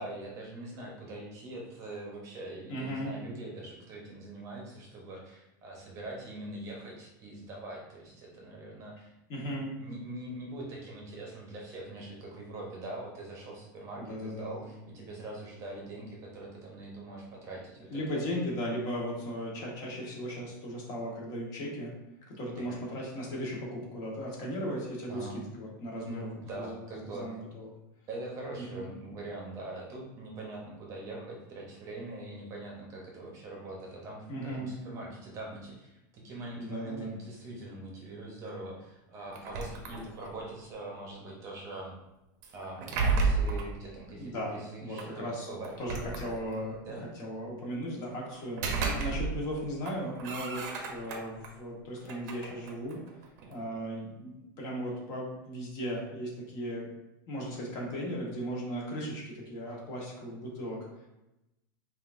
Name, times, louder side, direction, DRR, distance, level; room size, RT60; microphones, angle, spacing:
voice 1, 0.0-9.1 9.8-18.2 22.6-22.8 25.1-25.5 26.0-27.3 28.1-42.0 42.5-45.7 46.8-47.1, right 2 dB, 30° right, -2 dB, 0.8 m, -43 dB
voice 2, 2.7-3.1 9.3-9.7 14.0-14.7 17.9-21.9 22.3-27.7 28.6-28.9 34.3-34.7 36.6-37.1 44.1-45.5 45.8-53.0 53.5-56.9 57.3-60.8, equal, 35° left, -3 dB, 1.2 m, -37 dB
sound 1, 39.3-40.5 42.4-43.8 45.0-45.1 45.6-46.7 48.3-49.5 49.8-51.5 52.0-53.6, right 4 dB, 60° right, 0.7 m, -33 dB
5.6 x 2.5 x 2.5 m, 0.94 s
supercardioid pair, 160°, 11 cm